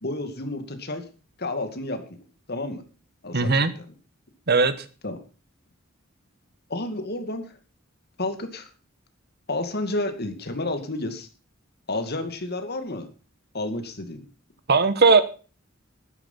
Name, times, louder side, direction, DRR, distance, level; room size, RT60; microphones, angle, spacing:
voice 1, 0.0-1.1 1.4-2.1 2.5-2.8 3.2-3.9 5.0-5.2 6.7-7.4 8.2-8.7 9.5-11.3 11.9-13.1 13.5-14.2, left 2 dB, 50° left, 2.3 m, -30 dB
voice 2, 3.3-3.7 4.5-4.7 14.7-15.2, right 4 dB, 50° right, 1.3 m, -18 dB
12.5 x 10.0 x 5.7 m
head